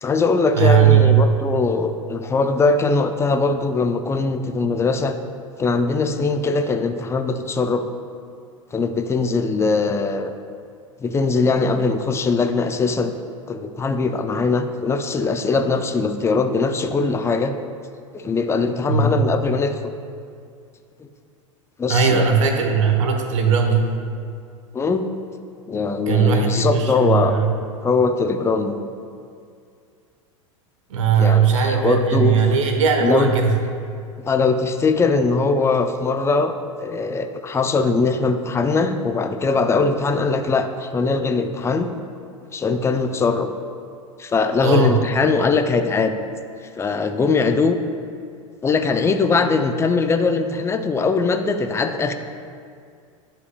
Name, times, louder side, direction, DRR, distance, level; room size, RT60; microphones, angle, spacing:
voice 1, 0.0-5.2 5.6-7.8 8.7-10.3 11.0-13.2 13.5-17.5 18.1-19.7 21.8-22.3 24.7-25.0 25.7-27.4 27.8-28.7 31.2-32.4 33.0-33.3 34.2-41.9 42.5-43.5 44.2-46.1 46.8-47.8 48.6-52.1, left 4 dB, 15° left, 8 dB, 0.4 m, -21 dB
voice 2, 0.5-1.3 18.9-19.3 21.9-23.9 26.1-27.5 30.9-33.6 44.6-45.0, right 6 dB, 70° right, 4 dB, 1.0 m, -18 dB
11.0 x 5.1 x 2.2 m, 2.3 s
hypercardioid pair, 90°, 17 cm